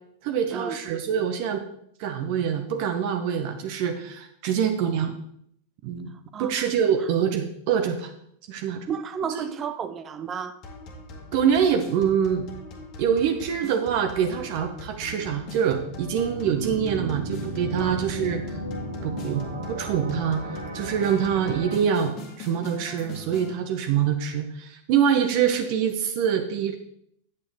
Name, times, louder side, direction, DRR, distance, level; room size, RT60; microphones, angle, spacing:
voice 1, 0.2-1.6 2.0-5.1 5.8-6.1 6.4-8.1 8.5-8.9 9.3-9.5 11.3-12.5 13.0-18.4 19.0-20.4 20.7-26.7, right 8 dB, 45° right, 1.0 m, -25 dB
voice 2, 6.3-6.6 8.9-10.6 17.8-18.0, right 7 dB, 25° right, 0.6 m, -32 dB
sound 1, 10.6-23.6, left 2 dB, 40° left, 1.7 m, -42 dB
sound 2, 14.9-21.8, right 1 dB, 75° right, 1.7 m, -35 dB
9.2 x 8.3 x 3.5 m
figure-of-eight pair, 90°, 0 cm